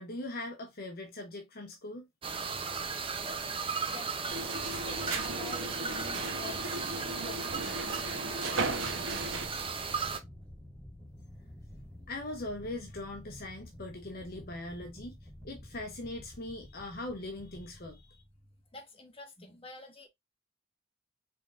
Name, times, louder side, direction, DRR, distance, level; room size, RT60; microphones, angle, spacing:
voice 1, 0.0-2.1 12.1-15.2 15.4-18.2, left 2 dB, 50° left, 0.9 m, -41 dB
sound 1, 2.2-10.2, right 5 dB, 30° right, 0.7 m, -36 dB
voice 2, 3.9-9.0 12.0-12.1 18.7-20.1, left 3 dB, 30° left, 1.3 m, -49 dB
sound 2, 4.3-9.5, right 3 dB, 85° right, 1.0 m, -36 dB
sound 3, 8.6-18.7, left 1 dB, 5° left, 2.0 m, -50 dB
5.2 x 3.6 x 2.5 m
head